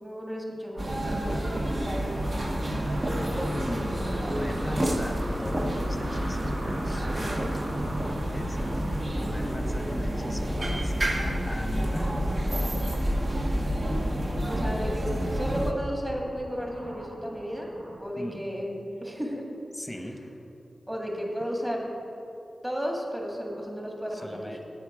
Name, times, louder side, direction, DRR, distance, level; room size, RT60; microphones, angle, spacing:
voice 1, 0.0-1.8 14.4-17.7 18.0-18.7 19.0-19.5 20.9-21.9 22.6-24.5, equal, 10° right, 0 dB, 1.7 m, -33 dB
sound 1, 0.7-18.0, right 1 dB, 65° right, 1.6 m, -43 dB
sound 2, 0.8-15.7, equal, 40° right, 0.9 m, -29 dB
voice 2, 2.6-7.5 7.8-12.4 18.2-18.4 19.7-20.2 24.1-24.6, left 1 dB, 10° left, 4 dB, 1.0 m, -38 dB
9.7 x 8.1 x 4.9 m, 2.9 s
wide cardioid pair, 75°, 0 cm